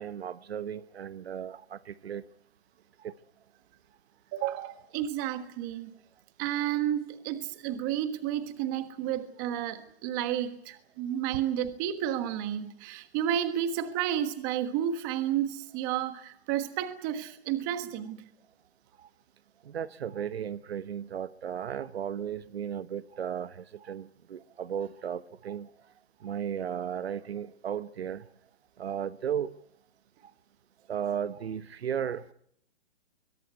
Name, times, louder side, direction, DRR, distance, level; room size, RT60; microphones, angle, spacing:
voice 1, 0.0-2.2 3.0-3.1 19.0-19.1 19.6-25.7 26.2-28.3 28.8-29.5 30.9-32.3, right 8 dB, 65° right, 1.0 m, -35 dB
voice 2, 4.3-5.9 6.4-18.2, right 10 dB, 20° right, 1.4 m, -31 dB
22.5 x 19.5 x 9.3 m
hypercardioid pair, 170°, 34 cm